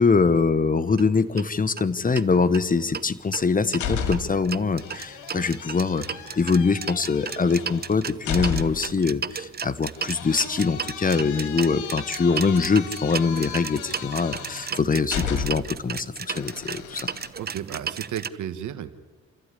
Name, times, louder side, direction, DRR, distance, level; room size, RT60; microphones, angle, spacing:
voice 1, 0.0-6.0 6.4-17.1, left 4 dB, 30° left, 14 dB, 1.2 m, -23 dB
sound 1, 0.9-1.0 1.4-1.5 1.8-1.9 2.2-3.1 3.3-18.3, right 7 dB, 30° right, 0.8 m, -34 dB
sound 2, 3.2-4.5 4.8-9.0 10.0-15.8 16.3-17.3, left 7 dB, 85° left, 2.7 m, -34 dB
voice 2, 17.4-18.9, right 10 dB, 75° right, 10 dB, 1.5 m, -33 dB
27.5 x 13.5 x 9.9 m, 1.4 s
cardioid pair, 90°, 30 cm